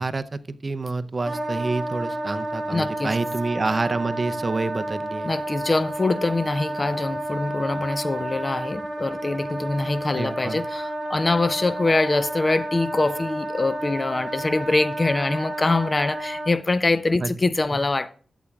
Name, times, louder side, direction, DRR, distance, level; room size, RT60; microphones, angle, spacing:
voice 1, 0.0-5.3 10.2-10.6 17.2-17.3, right 3 dB, 35° right, 0.6 m, -28 dB
Wind instrument woodwind instrument, 1.2-16.5, right 1 dB, 15° right, 1.9 m, -31 dB
voice 2, 2.7-3.1 5.2-18.2, left 2 dB, 30° left, 0.6 m, -24 dB
13.5 x 8.3 x 2.4 m
cardioid pair, 85°, 0 cm